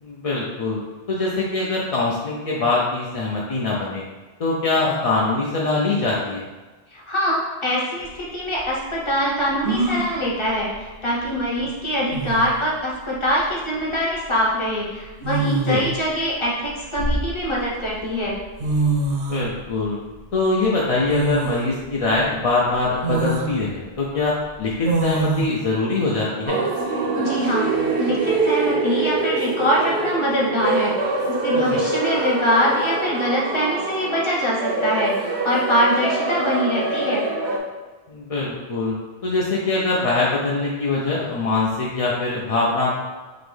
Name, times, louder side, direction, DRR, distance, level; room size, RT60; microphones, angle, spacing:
voice 1, 0.0-0.8 1.1-4.0 4.4-6.4 15.7-15.8 19.1-20.0 20.3-26.6 31.5-31.8 38.1-38.9 39.2-43.0, left 3 dB, 50° left, -4 dB, 0.5 m, -23 dB
voice 2, 6.9-18.3 27.1-27.7 28.0-37.2, equal, 30° left, -4 dB, 0.9 m, -23 dB
sound 1, 8.0-8.1 9.6-10.1 11.7-11.8 12.1-12.6 13.9-14.1 15.2-16.0 16.6-17.7 18.3-18.4 18.6-19.5 21.1-21.7 22.2-22.3 23.0-23.5 24.8-25.5, right 2 dB, 65° right, 0.7 m, -24 dB
sound 2, 26.5-37.6, right 3 dB, 80° right, 1.0 m, -24 dB
3.9 x 3.0 x 3.3 m, 1.3 s
omnidirectional pair, 1.1 m